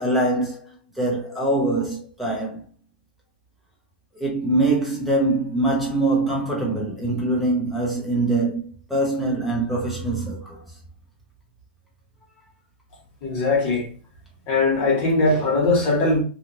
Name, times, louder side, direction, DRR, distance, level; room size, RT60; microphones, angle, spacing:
voice 1, 0.0-2.6 4.1-8.6 8.9-10.6, right 2 dB, ahead, 0.7 m, -23 dB
voice 2, 13.2-13.9 14.5-16.2, left 2 dB, 25° left, 1.2 m, -20 dB
2.9 x 2.5 x 2.5 m
hypercardioid pair, 170°, 5 cm